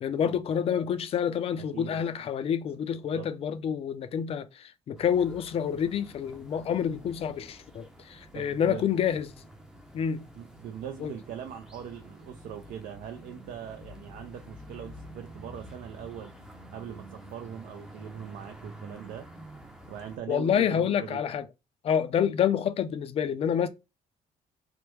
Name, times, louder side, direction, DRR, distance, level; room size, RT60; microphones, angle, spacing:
voice 1, 0.0-9.3 9.9-10.2 11.0-11.1 20.3-21.4 21.8-23.7, left 8 dB, 45° left, 0.4 m, -28 dB
voice 2, 1.5-2.0 3.1-3.3 8.3-8.9 10.3-16.3 16.7-19.3 19.9-21.2, right 9 dB, 75° right, 0.5 m, -41 dB
sound 1, 5.0-20.2, right 1 dB, 5° right, 0.5 m, -49 dB
3.3 x 2.1 x 3.0 m
cardioid pair, 150°, 14 cm